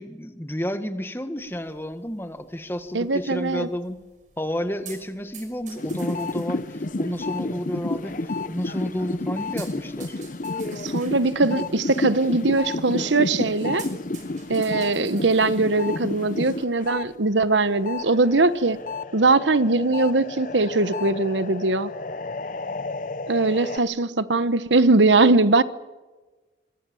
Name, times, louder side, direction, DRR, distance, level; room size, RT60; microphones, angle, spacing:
voice 1, 0.0-4.0 4.4-10.2, equal, 15° left, 1.8 m, -31 dB
sound 1, 1.4-18.8, right 7 dB, 45° right, 5.9 m, -51 dB
voice 2, 2.9-3.7 10.7-13.9 14.5-18.8 19.1-21.9 23.3-25.6, right 3 dB, 90° right, 1.1 m, -21 dB
sound 2, 5.8-17.1 17.4-23.8, left 2 dB, 45° left, 0.7 m, -31 dB
26.5 x 22.5 x 7.2 m
head